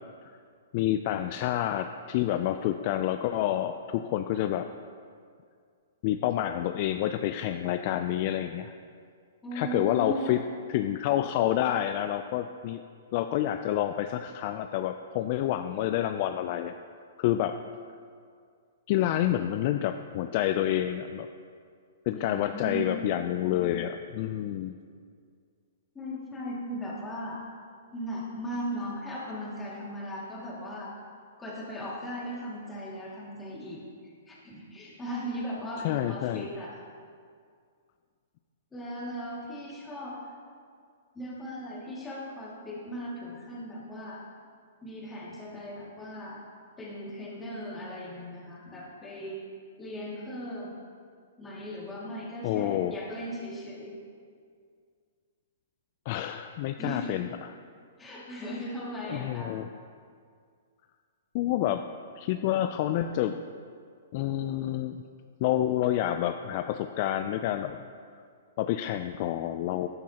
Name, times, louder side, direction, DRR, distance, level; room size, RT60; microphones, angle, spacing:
voice 1, 0.7-4.7 6.0-8.7 9.5-10.4 10.7-12.8 13.1-16.7 17.2-17.5 18.9-21.3 22.1-24.7 35.8-36.4 52.4-52.9 56.1-57.5 59.1-59.7 61.3-61.9 62.2-63.4 64.1-65.0 65.4-67.8 68.6-69.9, left 12 dB, 40° left, 8 dB, 0.3 m, -28 dB
voice 2, 9.4-10.4 22.1-23.0 25.9-27.4 27.9-30.9 31.4-36.8 38.7-40.2 41.1-44.2 44.8-46.4 46.8-49.4 49.8-50.7 51.4-53.9 56.8-57.2 58.0-59.6, equal, 10° left, -5 dB, 2.2 m, -37 dB
13.5 x 10.5 x 2.9 m, 2.2 s
hypercardioid pair, 155°, 0 cm